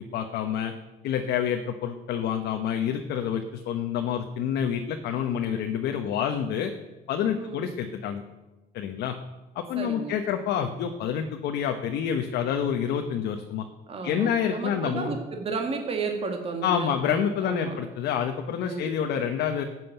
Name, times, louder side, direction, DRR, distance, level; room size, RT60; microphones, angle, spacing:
voice 1, 0.1-0.7 1.0-6.7 7.1-8.2 8.7-9.2 9.5-13.7 14.0-15.2 16.6-19.6, left 8 dB, 80° left, 5 dB, 1.1 m, -28 dB
voice 2, 9.8-10.1 13.9-17.8 18.7-18.9, right 4 dB, 35° right, 3 dB, 1.9 m, -33 dB
13.5 x 7.6 x 9.0 m, 1.1 s
cardioid pair, 110°, 17 cm